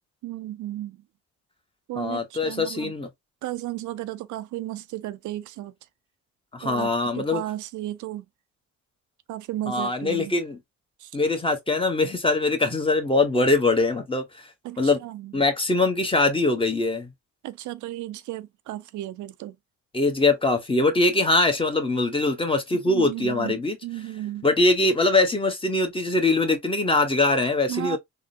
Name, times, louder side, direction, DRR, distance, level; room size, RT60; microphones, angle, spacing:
voice 1, 0.2-1.0 1.9-2.9 3.4-5.7 6.6-8.2 9.3-10.3 11.0-11.1 14.6-15.3 17.4-19.6 22.8-23.6 23.8-24.5 27.7-28.0, right 14 dB, 75° right, 0.5 m, -34 dB
voice 2, 2.0-3.1 6.5-7.4 9.7-10.6 11.1-14.5 14.8-15.0 15.3-17.1 19.9-23.8 24.4-28.0, left 2 dB, 15° left, 1.0 m, -22 dB
3.6 x 2.2 x 2.6 m
cardioid pair, 90°, 30 cm